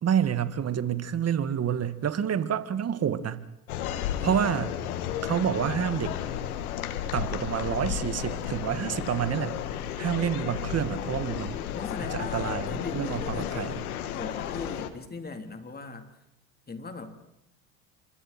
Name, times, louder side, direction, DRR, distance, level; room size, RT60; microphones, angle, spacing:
voice 1, 0.0-3.5 4.2-4.8 5.2-6.2 7.1-9.5 10.0-11.6 12.0-13.8, right 9 dB, 35° right, 12 dB, 2.2 m, -28 dB
sound 1, 3.7-14.9, left 10 dB, 85° left, 2.1 m, -33 dB
voice 2, 4.2-4.7 11.7-13.7 14.1-16.1 16.7-17.2, left 3 dB, 20° left, 6 dB, 3.9 m, -39 dB
30.0 x 26.5 x 4.5 m, 0.86 s
hypercardioid pair, 85°, 42 cm